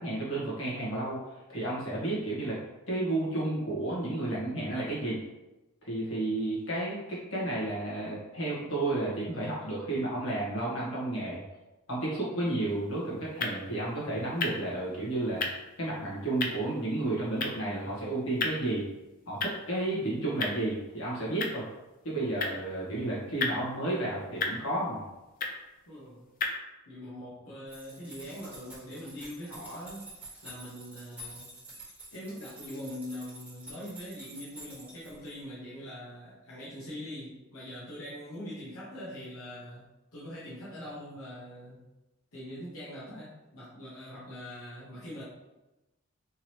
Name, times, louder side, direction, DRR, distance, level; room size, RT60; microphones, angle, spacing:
voice 1, 0.0-1.2 1.5-2.6 2.9-5.2 5.8-11.4 11.9-15.4 15.8-18.8 19.3-21.6 22.0-25.0, right 2 dB, 65° left, -6 dB, 1.4 m, -32 dB
sound 1, 12.6-26.6, left 4 dB, 40° left, 0.4 m, -38 dB
voice 2, 25.9-26.3 26.9-30.1 30.4-31.5 32.1-39.8 40.1-41.8 42.3-45.2, equal, 80° left, -9 dB, 1.1 m, -42 dB
sound 2, 27.7-35.4, right 1 dB, 5° right, 1.4 m, -49 dB
3.6 x 3.0 x 3.0 m, 1.0 s
head